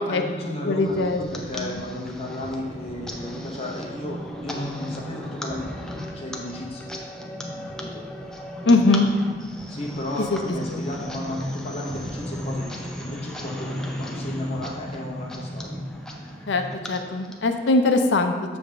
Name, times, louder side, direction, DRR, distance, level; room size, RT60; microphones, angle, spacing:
voice 1, 0.0-6.9 7.2-8.0 9.7-15.8, left 1 dB, 35° left, -2 dB, 0.9 m, -34 dB
voice 2, 0.7-1.2 1.5-1.8 8.7-9.1 10.3-10.4 10.7-10.8 16.5-18.3, left 2 dB, 80° left, 5 dB, 0.6 m, -21 dB
sound 1, 0.8-17.7, equal, 5° left, 0.6 m, -35 dB
7.1 x 3.4 x 6.3 m, 1.5 s
head